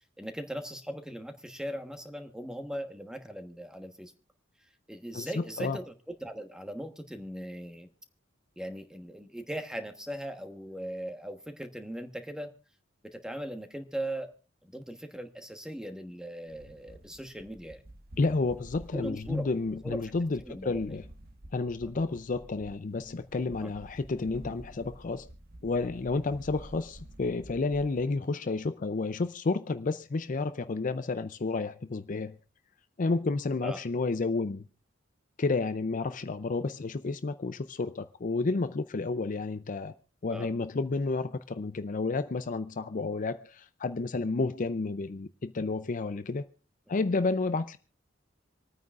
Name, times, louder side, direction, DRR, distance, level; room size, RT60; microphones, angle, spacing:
voice 1, 0.2-4.1 4.9-5.9 6.2-7.9 8.6-12.5 13.0-14.3 14.7-17.8 18.9-19.5 19.8-20.1 20.4-20.8 21.8-21.9 23.6-23.7 33.6-33.8 40.3-40.5, right 1 dB, 5° right, 1.2 m, -39 dB
voice 2, 5.1-5.8 18.2-21.0 21.5-25.3 25.6-32.4 33.0-34.6 35.4-39.9 40.2-46.5 46.9-47.8, left 3 dB, 45° left, 0.5 m, -31 dB
sound 1, 16.5-28.1, right 1 dB, 55° right, 1.3 m, -50 dB
26.5 x 9.4 x 2.5 m
head